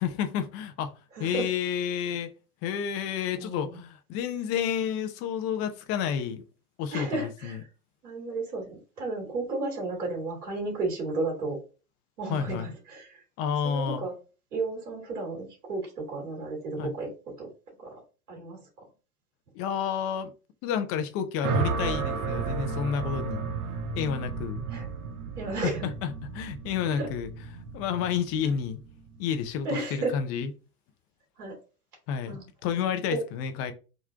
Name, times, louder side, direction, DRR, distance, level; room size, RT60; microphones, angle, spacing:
voice 1, 0.0-0.9 1.2-2.3 2.6-6.4 6.8-7.6 12.3-12.7 13.4-14.0 16.8-16.9 19.5-20.3 20.6-23.5 24.0-24.6 25.6-27.3 27.7-28.8 29.2-30.5 32.1-33.7, left 8 dB, 30° left, 0.6 m, -30 dB
voice 2, 1.1-1.5 3.3-3.8 6.9-7.6 8.0-11.6 12.2-13.2 13.6-14.1 14.5-17.1 17.4-17.5 17.8-18.0 18.3-18.6 24.7-24.9 25.3-25.9 26.9-27.1 28.5-28.6 29.6-30.1 31.4-31.6 32.3-32.4 33.1-33.2, right 3 dB, 85° right, 2.0 m, -33 dB
sound 1, 21.4-29.7, right 5 dB, 55° right, 1.0 m, -33 dB
3.7 x 3.0 x 3.5 m
hypercardioid pair, 120°, 45 cm